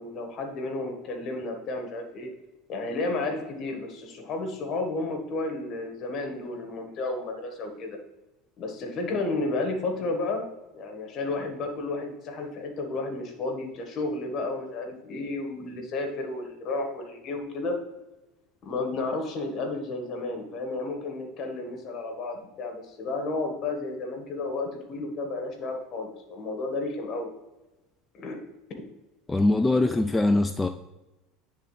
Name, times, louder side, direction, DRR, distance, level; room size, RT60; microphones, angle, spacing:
voice 1, 0.0-2.3 2.7-8.0 8.6-10.5 10.7-17.8 18.6-27.3 28.1-28.4, left 2 dB, 45° left, 4 dB, 1.6 m, -32 dB
voice 2, 29.3-30.7, left 2 dB, 10° left, 7 dB, 0.3 m, -22 dB
9.8 x 3.7 x 3.3 m, 1.1 s
supercardioid pair, 105°, 0 cm